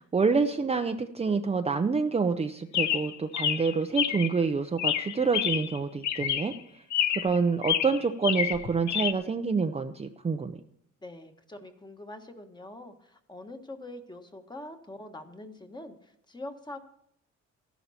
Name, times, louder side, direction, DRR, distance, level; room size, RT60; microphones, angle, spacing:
voice 1, 0.0-6.8 7.2-10.6, right 4 dB, 20° right, 6 dB, 0.6 m, -27 dB
Chirp tweet, 2.7-4.4 4.8-5.8 6.0-6.6 6.9-7.4 7.6-9.1, left 10 dB, 75° left, 0.9 m, -28 dB
voice 2, 11.0-16.8, left 1 dB, 15° left, 6 dB, 1.5 m, -44 dB
13.5 x 11.5 x 4.3 m, 0.72 s
cardioid pair, 125°, 29 cm